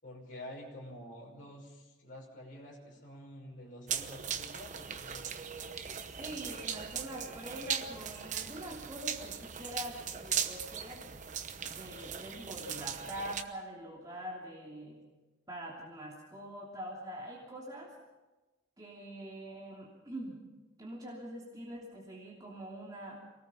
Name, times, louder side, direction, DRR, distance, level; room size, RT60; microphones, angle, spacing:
voice 1, 0.0-5.3, left 1 dB, 45° left, -2 dB, 5.9 m, -48 dB
sound 1, 3.9-13.4, right 8 dB, 40° right, 1.0 m, -39 dB
voice 2, 6.2-11.0 11.6-15.0 15.5-17.9 18.8-20.4 20.8-23.2, right 1 dB, 20° right, -4 dB, 2.9 m, -44 dB
24.0 x 19.0 x 5.8 m, 1.1 s
head